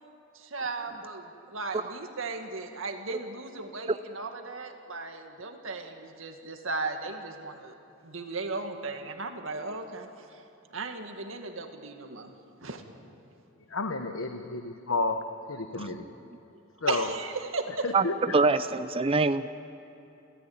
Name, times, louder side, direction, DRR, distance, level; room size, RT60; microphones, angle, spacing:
voice 1, 0.3-7.7 8.0-10.4 10.7-12.3 12.6-12.8 16.5-17.3 17.5-17.8, right 3 dB, 75° right, 5 dB, 2.1 m, -36 dB
voice 2, 13.7-16.1 16.8-17.2 17.7-18.4, left 3 dB, 85° left, 7 dB, 1.1 m, -31 dB
voice 3, 18.3-19.5, right 3 dB, 30° right, 11 dB, 0.5 m, -24 dB
29.5 x 14.5 x 8.9 m, 2.9 s
head